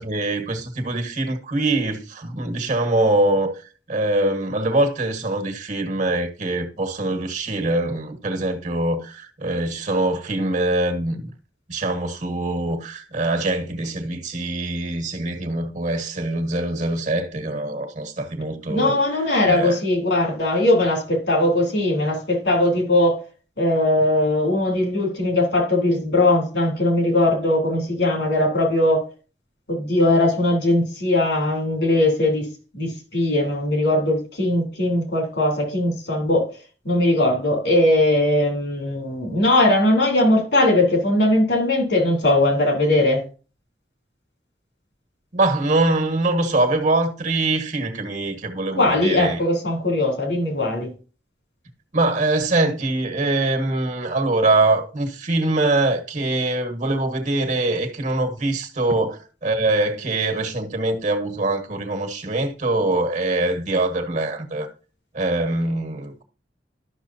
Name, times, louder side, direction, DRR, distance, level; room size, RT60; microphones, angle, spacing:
voice 1, 0.0-3.6 3.9-11.3 11.7-19.0 19.5-19.7 45.3-49.4 51.9-64.7 65.1-66.2, right 2 dB, 45° right, 1.5 m, -23 dB
voice 2, 18.7-23.2 23.6-29.0 29.7-32.5 32.7-36.5 36.8-43.2 48.8-50.9, left 1 dB, 75° left, 3.4 m, -20 dB
12.0 x 6.2 x 2.8 m
head